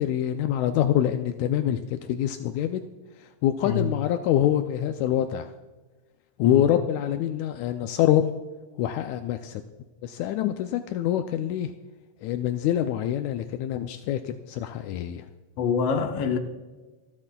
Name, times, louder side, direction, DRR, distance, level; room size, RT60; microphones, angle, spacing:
voice 1, 0.0-2.8 3.2-5.5 6.4-8.3 8.8-9.6 10.0-11.7 12.2-15.3, left 11 dB, 85° left, 7 dB, 1.6 m, -25 dB
voice 2, 6.4-6.8 15.6-16.4, left 5 dB, 65° left, 5 dB, 1.6 m, -26 dB
26.5 x 9.8 x 2.3 m, 1.3 s
omnidirectional pair, 3.8 m